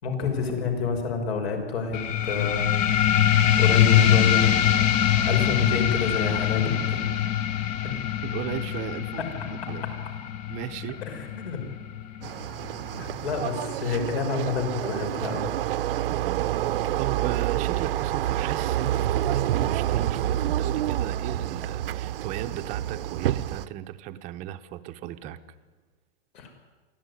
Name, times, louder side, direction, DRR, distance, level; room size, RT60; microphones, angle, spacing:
voice 1, 0.0-2.8 3.3-4.5 5.2-7.3 7.8-7.9 11.1-11.6 13.0-15.5 26.3-26.5, left 4 dB, 70° left, 5 dB, 6.1 m, -29 dB
sound 1, 1.9-13.0, left 10 dB, 25° left, 0.8 m, -23 dB
voice 2, 8.2-9.8 10.5-11.0 16.1-16.5 17.0-25.4, right 12 dB, 25° right, 10 dB, 0.8 m, -36 dB
sound 2, 12.2-23.7, right 12 dB, 60° right, 0.8 m, -28 dB
23.5 x 15.5 x 9.8 m, 1.3 s
supercardioid pair, 170°, 32 cm